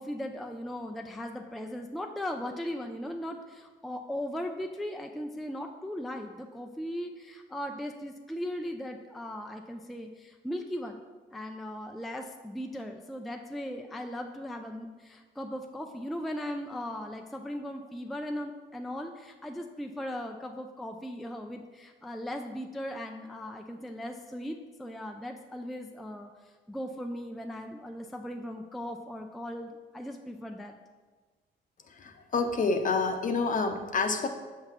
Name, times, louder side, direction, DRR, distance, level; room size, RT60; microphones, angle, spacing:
voice 1, 0.0-26.3 26.7-30.8, left 1 dB, ahead, 3 dB, 0.3 m, -38 dB
voice 2, 31.9-34.3, left 4 dB, 40° left, 6 dB, 0.7 m, -28 dB
6.5 x 5.8 x 3.0 m, 1.4 s
cardioid pair, 90°, 20 cm